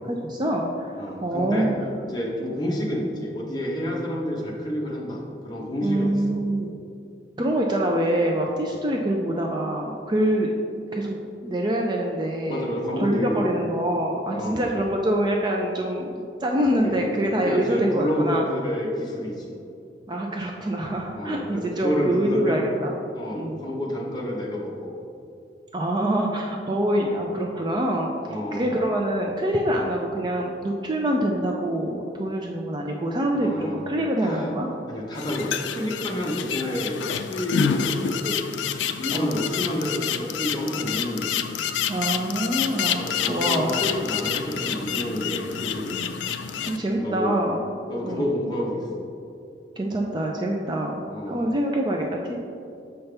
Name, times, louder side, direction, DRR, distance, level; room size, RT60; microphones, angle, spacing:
voice 1, 0.0-0.9 1.2-1.7 5.8-6.7 7.4-16.1 16.4-18.5 20.1-22.9 23.3-23.6 25.7-28.1 28.5-34.7 39.1-39.4 41.9-43.8 46.7-47.6 48.0-48.3 49.8-51.0 51.3-52.4, right 1 dB, 25° right, 0 dB, 0.4 m, -25 dB
voice 2, 1.0-1.7 2.0-6.4 12.5-13.6 14.3-14.7 16.8-17.0 17.3-19.5 21.1-22.6 23.1-24.9 26.9-27.1 28.3-28.7 29.7-29.8 33.4-33.8 34.2-34.5 34.9-38.4 39.0-41.3 42.9-46.0 46.9-47.3 47.9-49.1 51.1-51.4, left 1 dB, 20° left, -3 dB, 0.9 m, -29 dB
sound 1, 35.2-46.8, left 8 dB, 80° left, 0.3 m, -28 dB
6.7 x 5.6 x 3.3 m, 2.5 s
head